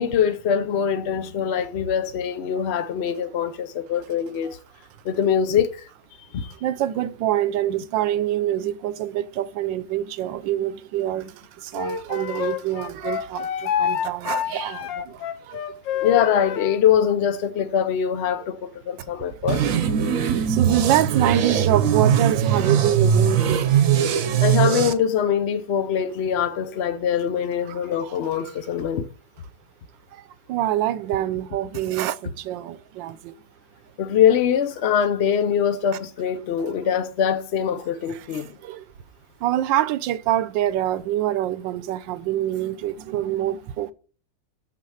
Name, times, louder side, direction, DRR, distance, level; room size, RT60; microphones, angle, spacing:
voice 1, 0.0-4.6 5.0-5.9 6.3-6.5 16.0-19.6 24.4-29.1 34.0-38.5, left 8 dB, 70° left, 0.6 m, -23 dB
voice 2, 6.5-15.6 20.0-23.8 27.7-28.2 30.1-33.3 38.1-38.9 39.4-43.9, right 12 dB, 85° right, 1.4 m, -26 dB
Wind instrument woodwind instrument, 11.7-16.8, left 9 dB, 90° left, 1.5 m, -28 dB
sound 1, 19.5-24.9, right 8 dB, 55° right, 1.1 m, -20 dB
6.8 x 6.4 x 5.6 m
omnidirectional pair, 2.0 m